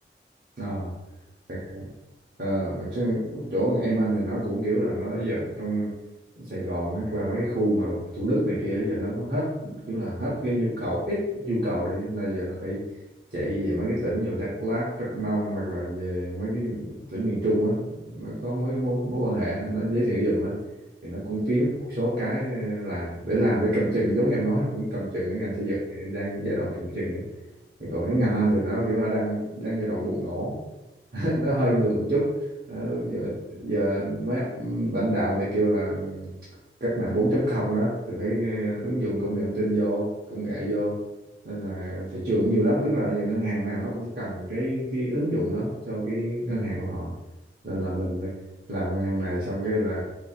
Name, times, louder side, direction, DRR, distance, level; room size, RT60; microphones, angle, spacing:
voice 1, 0.6-0.9 1.5-1.9 2.4-5.9 6.4-12.8 13.3-20.6 21.0-27.2 27.8-30.6 31.1-32.3 32.7-36.3 36.8-41.0 41.4-47.1 47.6-48.3 48.7-50.0, right 1 dB, 55° right, -8 dB, 1.0 m, -27 dB
4.9 x 2.7 x 2.4 m, 1.0 s
head